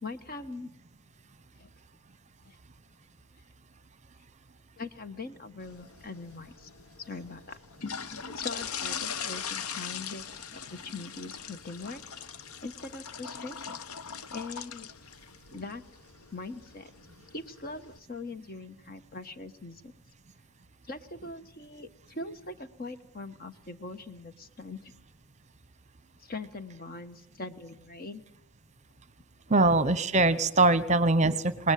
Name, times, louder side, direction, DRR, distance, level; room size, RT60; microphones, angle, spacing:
voice 1, 0.0-0.7 1.6-1.7 2.4-2.6 4.8-6.7 7.0-7.6 8.3-12.0 12.6-13.7 14.3-14.9 15.5-15.8 16.3-16.9 17.3-19.9 20.9-24.9 26.2-28.2 29.5-29.6, left 3 dB, 40° left, 10 dB, 1.4 m, -41 dB
sound 1, 5.6-18.0, left 7 dB, 75° left, 1.0 m, -41 dB
voice 2, 29.5-31.7, right 2 dB, 30° right, 15 dB, 1.0 m, -23 dB
27.5 x 19.5 x 9.4 m, 0.82 s
head